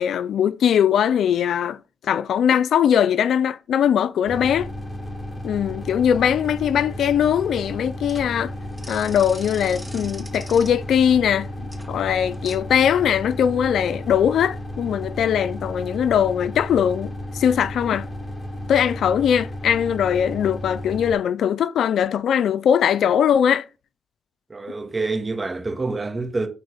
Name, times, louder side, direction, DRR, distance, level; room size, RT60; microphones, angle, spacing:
voice 1, 0.0-1.8 2.0-4.7 5.4-8.5 8.9-11.5 11.9-18.1 18.7-23.6, left 8 dB, 85° left, 0.5 m, -20 dB
sound 1, 4.3-21.1, equal, 35° left, 2.8 m, -33 dB
sound 2, 8.0-12.5, equal, 10° left, 3.2 m, -42 dB
voice 2, 24.5-26.5, right 3 dB, 35° right, 2.3 m, -27 dB
12.0 x 4.4 x 5.0 m
cardioid pair, 60°, 0 cm